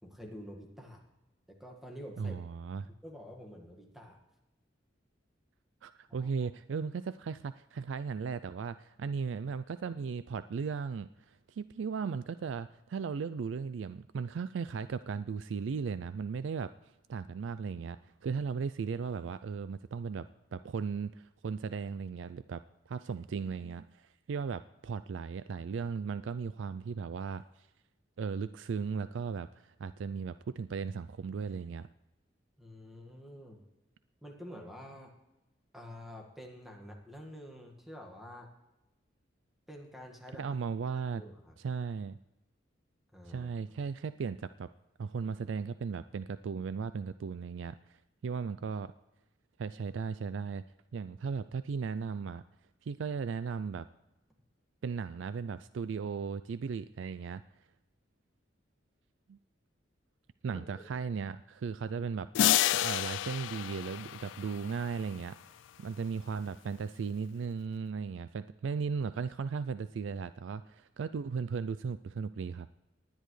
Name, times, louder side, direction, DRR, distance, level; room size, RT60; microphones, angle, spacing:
voice 1, 0.0-1.0 1.5-2.4 3.0-4.2 6.1-6.5 32.6-33.6 34.2-35.1 35.7-38.5 39.7-40.4 41.1-41.6 43.1-43.5 60.5-60.6, equal, ahead, 1 dB, 1.7 m, -48 dB
voice 2, 2.2-2.9 5.8-16.7 17.1-20.3 20.5-27.7 28.2-31.9 40.4-41.2 41.6-42.2 43.3-44.7 45.0-48.0 48.2-48.9 49.6-50.7 50.9-52.4 52.8-53.9 54.8-57.4 59.3-59.4 60.4-62.3 62.7-72.7, right 5 dB, 85° right, 14 dB, 0.4 m, -36 dB
sound 1, 62.3-65.1, left 12 dB, 85° left, 0.3 m, -30 dB
19.0 x 10.5 x 3.2 m, 0.98 s
head